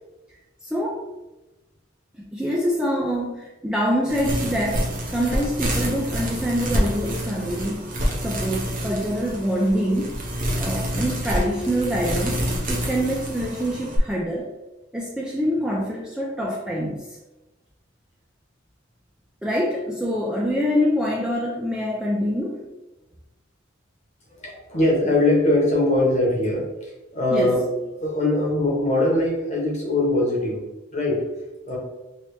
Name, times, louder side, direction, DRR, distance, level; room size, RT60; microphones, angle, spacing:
voice 1, 0.7-1.0 2.3-7.9 8.2-10.1 10.6-14.5 14.9-17.2 19.4-22.6 27.3-27.6, equal, 5° right, -3 dB, 0.3 m, -25 dB
sound 1, 4.1-14.0, equal, 40° right, 0.7 m, -27 dB
voice 2, 24.4-26.7 27.1-27.6 27.9-30.6 30.9-31.2 31.7-31.8, left 1 dB, 35° left, -2 dB, 1.0 m, -21 dB
3.2 x 2.8 x 3.0 m, 1.0 s
head